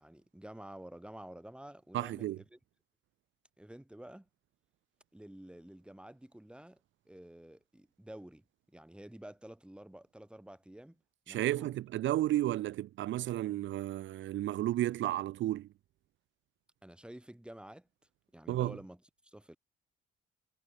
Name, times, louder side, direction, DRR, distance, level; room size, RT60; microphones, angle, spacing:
voice 1, 0.0-2.6 3.6-4.3 5.1-8.4 8.7-11.8 16.8-17.9 18.3-19.0 19.2-19.6, right 1 dB, 5° right, 6.6 m, -50 dB
voice 2, 1.9-2.4 11.3-15.7 18.5-18.8, right 14 dB, 70° right, 0.6 m, -32 dB
cardioid pair, 90°, 20 cm